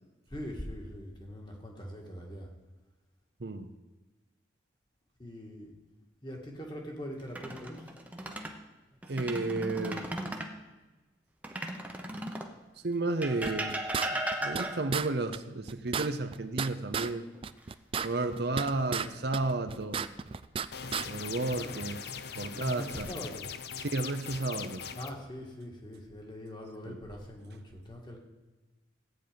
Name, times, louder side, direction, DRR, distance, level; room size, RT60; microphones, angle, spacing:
voice 1, 0.3-2.5 5.2-5.7 6.2-7.9 21.5-21.8 22.5-23.5 24.9-28.2, equal, 25° left, 1 dB, 1.7 m, -42 dB
sound 1, 7.2-8.6 9.0-10.6 11.4-12.6 13.2-15.0 16.9-17.6 18.0-18.2 21.2-21.8 22.5-23.1, right 1 dB, 10° right, 0.8 m, -37 dB
voice 2, 9.1-10.0 12.8-13.8 14.1-17.3 18.0-20.0 21.0-22.0 22.4-23.1 23.8-24.8 26.9-27.0, right 2 dB, 55° right, 9 dB, 0.7 m, -32 dB
sound 2, 13.4-14.7 14.9-15.1 15.3-15.4 15.7-17.1 17.4-19.1 19.3-20.7 20.9-21.1, right 6 dB, 30° right, 0.3 m, -33 dB
sound 3, 20.7-25.1, left 7 dB, 55° left, 0.5 m, -41 dB
15.0 x 9.2 x 5.2 m, 1.2 s
head